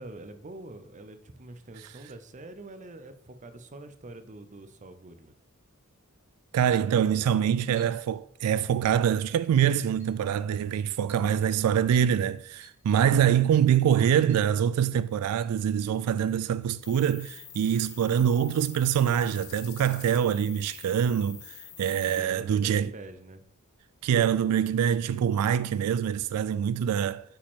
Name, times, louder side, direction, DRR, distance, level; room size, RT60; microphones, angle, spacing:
voice 1, 0.0-5.3 22.1-23.4, right 2 dB, 35° right, 0.6 m, -44 dB
voice 2, 6.5-22.9 24.0-27.2, right 9 dB, 85° right, 0.3 m, -25 dB
Chink clink, 6.7-6.9 7.8-8.1 8.8-9.1 10.0-10.2 11.1-11.3 11.9-12.2 12.6-12.8 13.5-13.7 14.3-14.5 14.8-14.9 15.4-15.5 16.4-16.5, equal, 10° right, 2.1 m, -56 dB
sound 1, 16.8-22.2, left 11 dB, 85° left, 1.1 m, -46 dB
8.4 x 5.1 x 3.7 m
head